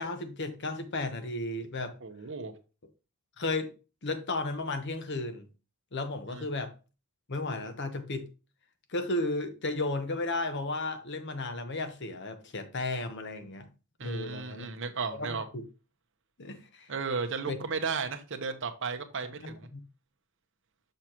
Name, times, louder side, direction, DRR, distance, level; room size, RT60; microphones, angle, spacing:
voice 1, 0.0-2.0 3.4-3.7 4.0-5.5 5.9-6.7 7.3-8.3 8.9-13.7 14.0-14.7 15.1-15.6 16.4-16.9 17.5-17.6 19.3-19.8, left 2 dB, 55° left, 1.1 m, -34 dB
voice 2, 2.0-2.5 6.3-6.4 14.0-15.4 16.9-19.7, right 4 dB, 60° right, 0.9 m, -34 dB
6.6 x 6.1 x 2.9 m
head